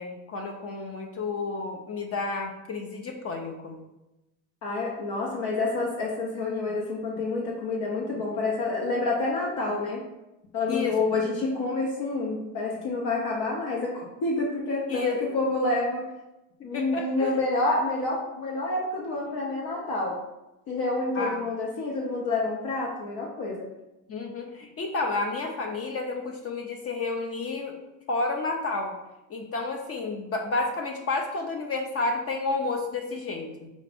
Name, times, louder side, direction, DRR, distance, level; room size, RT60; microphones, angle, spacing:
voice 1, 0.0-3.8 10.7-10.9 14.9-15.2 16.6-17.3 21.1-21.4 24.1-27.7 28.1-29.0 29.3-33.7, left 3 dB, 35° left, 3 dB, 0.5 m, -31 dB
voice 2, 4.6-10.0 10.5-15.1 15.3-16.0 16.6-20.2 20.7-23.7, left 2 dB, 60° left, -3 dB, 0.9 m, -28 dB
4.1 x 2.4 x 3.4 m, 0.96 s
supercardioid pair, 100°, 44 cm